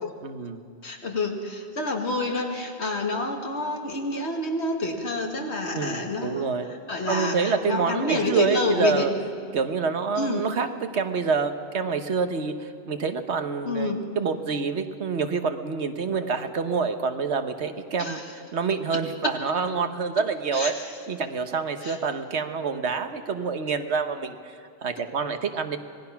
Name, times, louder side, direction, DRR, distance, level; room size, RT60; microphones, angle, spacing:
voice 1, 0.2-0.6 5.7-6.7 7.1-9.1 9.5-10.7 10.9-20.7 21.1-25.8, right 5 dB, 80° right, 8 dB, 1.4 m, -27 dB
voice 2, 0.8-6.5 6.9-9.1 10.2-10.5 13.6-14.1 18.0-18.2 19.2-19.3 20.5-20.7 21.8-22.0, left 2 dB, 75° left, 2 dB, 2.3 m, -28 dB
25.5 x 19.0 x 5.9 m, 2.3 s
omnidirectional pair, 1.1 m